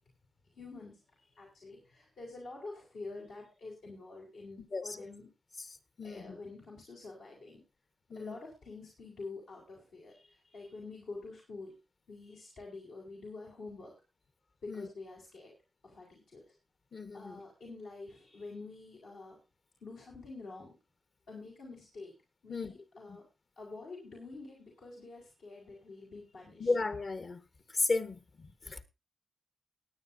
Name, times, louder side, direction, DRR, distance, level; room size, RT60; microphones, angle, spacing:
voice 1, 0.5-0.9 1.4-5.3 6.0-7.6 8.2-11.8 12.1-13.9 14.6-15.5 15.8-16.4 17.1-19.4 19.8-20.7 21.3-22.1 22.4-23.2 23.6-26.7, left 3 dB, 85° left, 4.0 m, -47 dB
voice 2, 6.0-6.4 8.1-8.4 14.7-14.9 16.9-17.4 22.5-22.7 23.1-23.2 26.6-27.4 27.7-28.8, left 3 dB, 60° left, 1.4 m, -34 dB
18.5 x 9.7 x 2.7 m
supercardioid pair, 40°, 0 cm